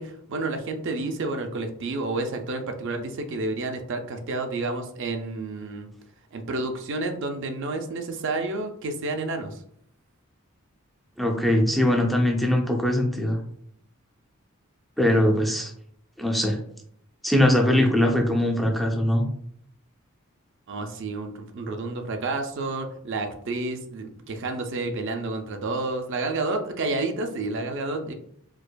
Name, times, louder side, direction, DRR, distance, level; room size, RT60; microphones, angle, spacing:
voice 1, 0.0-5.9 6.3-9.6 20.7-28.1, right 2 dB, 60° right, 5 dB, 0.5 m, -30 dB
voice 2, 11.2-13.4 15.0-15.7 16.2-16.6 17.2-19.2, left 1 dB, ahead, 0 dB, 0.4 m, -21 dB
4.6 x 2.4 x 2.2 m, 0.67 s
head